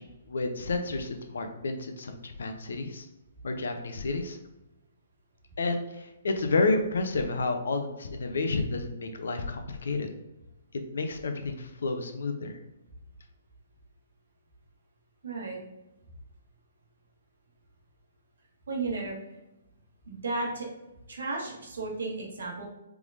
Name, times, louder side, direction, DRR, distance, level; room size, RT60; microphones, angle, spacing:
voice 1, 0.0-3.1 3.4-4.4 5.6-10.1 10.9-12.5, left 3 dB, 70° left, 6 dB, 0.7 m, -30 dB
voice 2, 15.2-15.6 18.7-19.2 20.1-20.7 21.1-22.6, right 3 dB, 75° right, -2 dB, 1.4 m, -33 dB
4.6 x 3.6 x 2.6 m, 0.96 s
hypercardioid pair, 130°, 0 cm